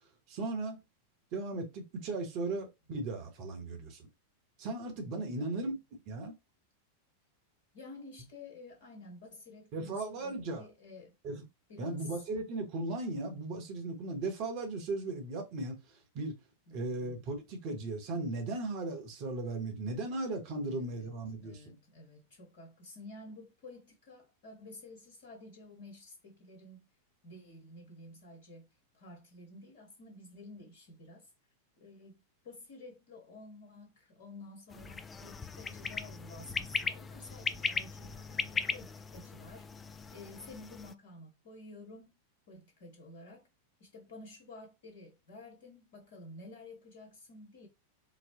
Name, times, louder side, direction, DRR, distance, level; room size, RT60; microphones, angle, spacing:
voice 1, 0.3-0.8 1.3-4.0 4.6-5.8 6.1-6.3 9.7-10.7 11.2-11.4 11.8-15.8 16.1-16.3 16.7-21.6, right 2 dB, 45° right, 1.0 m, -37 dB
voice 2, 5.3-5.7 7.7-11.1 11.7-12.2 16.7-17.0 20.7-26.9 27.2-28.7 28.9-31.3 31.8-39.7 40.1-42.1 42.5-43.5 43.8-47.7, left 2 dB, 55° left, 1.4 m, -51 dB
sound 1, 34.7-40.9, left 5 dB, 15° left, 0.3 m, -38 dB
4.0 x 2.1 x 2.8 m
figure-of-eight pair, 90°, 0 cm